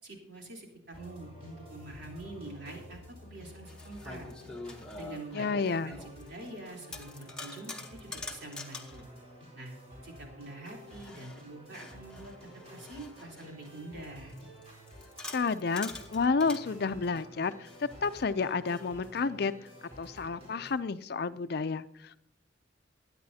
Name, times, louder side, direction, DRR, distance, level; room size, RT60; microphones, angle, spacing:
voice 1, 0.0-4.3 4.9-9.1 9.5-9.7 10.0-14.4, right 2 dB, 65° right, -1 dB, 3.6 m, -46 dB
sound 1, 0.9-20.7, left 1 dB, 35° right, 4.1 m, -51 dB
sound 2, 2.6-2.7 3.4-6.5 6.8-9.0 10.9-13.8 14.3-16.7 17.7-18.9, left 2 dB, 5° left, 1.1 m, -46 dB
voice 2, 5.3-5.9 15.3-19.5 20.0-22.2, left 4 dB, 55° left, 13 dB, 0.5 m, -30 dB
21.5 x 9.5 x 2.8 m, 0.81 s
head